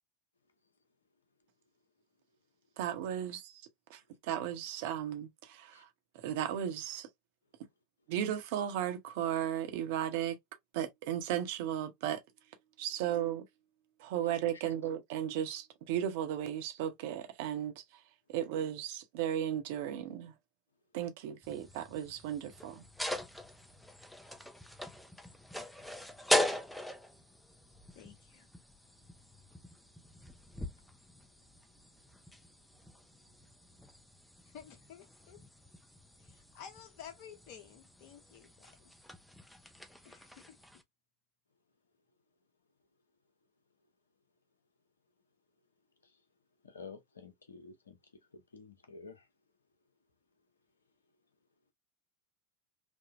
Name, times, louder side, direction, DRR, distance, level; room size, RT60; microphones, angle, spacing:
voice 1, 2.8-3.6 3.9-4.0 4.3-5.9 6.2-7.1 8.1-10.4 10.7-12.2 12.8-13.4 14.0-17.7 18.3-20.3 20.9-22.8, right 10 dB, 55° right, 0.7 m, -35 dB
sound 1, 21.4-40.8, left 1 dB, 5° left, 0.5 m, -41 dB
voice 2, 27.9-28.5 34.4-35.4 36.2-38.9 40.0-40.6, left 8 dB, 50° left, 0.9 m, -52 dB
voice 3, 46.6-48.0 48.3-49.3, left 4 dB, 80° left, 0.6 m, -51 dB
3.5 x 2.1 x 2.5 m
figure-of-eight pair, 80°, 0 cm